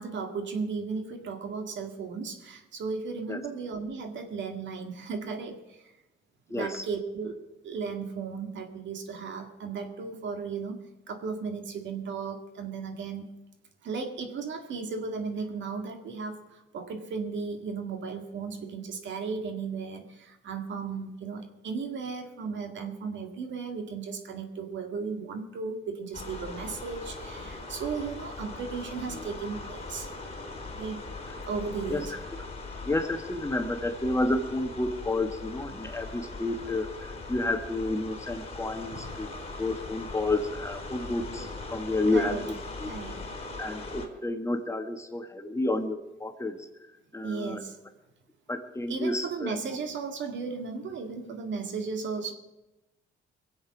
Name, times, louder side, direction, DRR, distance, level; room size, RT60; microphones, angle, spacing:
voice 1, 0.0-5.6 6.5-7.4 7.6-13.3 13.8-16.4 16.7-30.1 30.7-31.0 31.5-32.1 38.9-39.1 42.1-42.4 42.9-43.1 47.2-47.7 48.9-52.3, right 5 dB, 70° right, 5 dB, 2.0 m, -35 dB
voice 2, 6.5-6.9 31.9-32.1 32.4-32.5 32.8-39.3 39.6-42.9 43.6-46.7 47.1-47.6 48.5-49.8, left 2 dB, 15° left, 6 dB, 1.4 m, -30 dB
sound 1, 26.1-44.1, left 3 dB, 30° left, 3.8 m, -40 dB
22.0 x 7.9 x 6.1 m, 0.98 s
cardioid pair, 90°, 20 cm